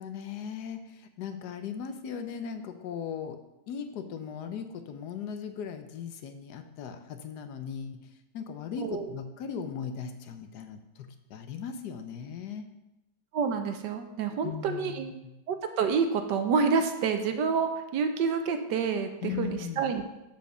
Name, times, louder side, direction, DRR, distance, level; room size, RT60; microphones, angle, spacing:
voice 1, 0.0-3.4 3.7-12.7 14.4-15.3 19.2-19.9, left 7 dB, 75° left, 8 dB, 1.3 m, -38 dB
voice 2, 13.3-15.1 15.5-20.0, right 5 dB, 80° right, 7 dB, 1.4 m, -28 dB
7.0 x 5.2 x 6.6 m, 0.93 s
omnidirectional pair, 1.8 m